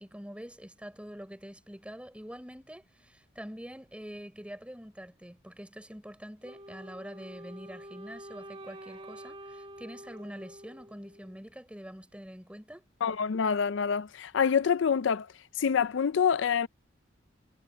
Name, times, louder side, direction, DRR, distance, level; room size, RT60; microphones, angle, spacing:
voice 1, 0.0-12.9, equal, 5° right, 3.8 m, -45 dB
Wind instrument woodwind instrument, 6.4-11.5, right 1 dB, 25° right, 1.6 m, -47 dB
voice 2, 13.0-15.3 15.6-16.7, left 7 dB, 70° left, 0.4 m, -26 dB
head